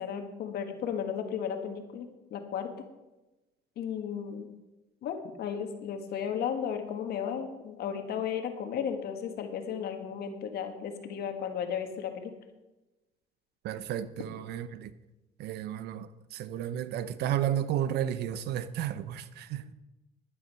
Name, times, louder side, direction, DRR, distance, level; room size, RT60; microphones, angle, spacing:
voice 1, 0.0-2.7 3.8-4.5 5.0-12.3, left 8 dB, 70° left, 1.8 m, -34 dB
voice 2, 13.6-14.9 15.4-19.7, right 10 dB, 75° right, 0.8 m, -33 dB
11.0 x 9.4 x 5.7 m
cardioid pair, 110°, 17 cm